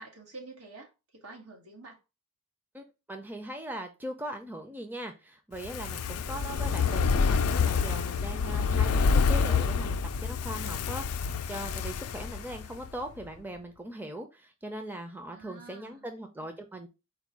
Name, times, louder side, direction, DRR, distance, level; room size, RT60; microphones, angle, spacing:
voice 1, 0.0-2.0 15.3-16.0, right 3 dB, 90° right, 1.6 m, -48 dB
voice 2, 2.7-16.9, right 1 dB, 10° right, 0.5 m, -40 dB
Fire, 5.5-12.9 13.2-13.3, left 5 dB, 85° left, 0.4 m, -27 dB
4.6 x 2.3 x 4.5 m
head